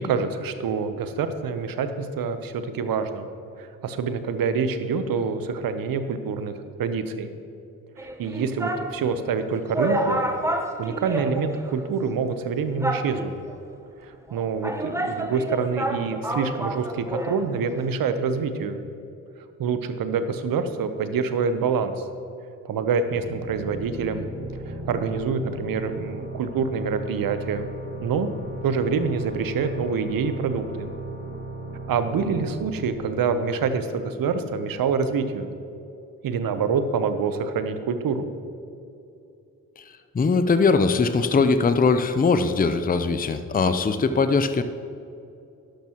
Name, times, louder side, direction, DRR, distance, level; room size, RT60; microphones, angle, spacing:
voice 1, 0.0-3.3 3.6-6.5 6.8-7.3 8.0-10.2 10.8-13.3 14.0-18.8 19.6-22.1 22.6-24.3 24.7-27.7 28.0-28.3 28.6-30.9 31.9-35.5 36.2-38.3, right 5 dB, 60° right, 10 dB, 1.0 m, -26 dB
sound 1, 8.0-8.9 9.4-9.5 9.7-11.8 12.1-12.2 12.8-13.5 14.3-17.5 17.7-17.8, right 1 dB, 5° right, 1.1 m, -29 dB
sound 2, 22.9-34.3, right 1 dB, 90° left, 2.6 m, -37 dB
voice 2, 40.1-44.6, left 4 dB, 25° left, 11 dB, 0.6 m, -21 dB
12.0 x 11.5 x 3.0 m, 2.7 s
hypercardioid pair, 45°, 38 cm